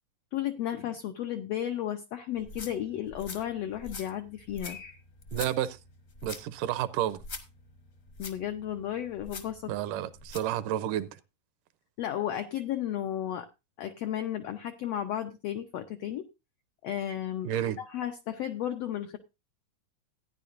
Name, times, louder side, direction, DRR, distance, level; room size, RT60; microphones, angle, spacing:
voice 1, 0.3-5.0 8.2-9.7 12.0-13.5 13.8-16.3 16.8-17.5 17.8-19.2, left 11 dB, 80° left, 1.4 m, -33 dB
sound 1, 2.4-10.6, left 3 dB, 50° left, 0.9 m, -45 dB
voice 2, 5.3-5.8 6.2-7.2 9.7-11.1 17.4-17.8, right 12 dB, 80° right, 2.2 m, -30 dB
15.5 x 10.0 x 2.5 m
omnidirectional pair, 3.8 m